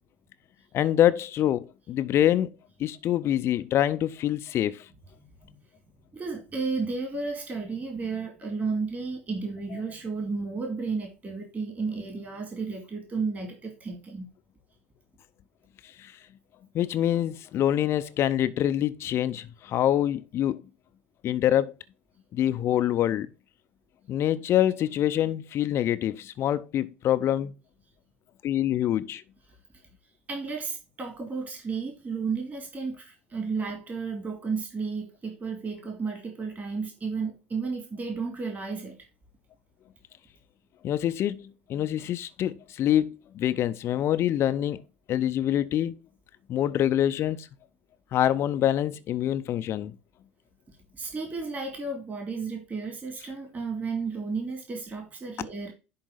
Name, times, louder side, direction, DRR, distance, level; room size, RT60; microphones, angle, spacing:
voice 1, 0.7-2.5 2.8-4.9 9.7-9.8 16.0-16.1 16.7-20.6 21.2-21.7 22.3-23.3 24.1-27.5 28.4-29.2 40.8-44.8 45.1-45.9 46.5-47.5 48.1-49.9, left 11 dB, 40° left, 0.5 m, -25 dB
voice 2, 6.1-14.3 30.3-39.0 50.9-55.7, right 4 dB, 25° right, 2.5 m, -33 dB
10.5 x 3.9 x 3.9 m
figure-of-eight pair, 75°, 7 cm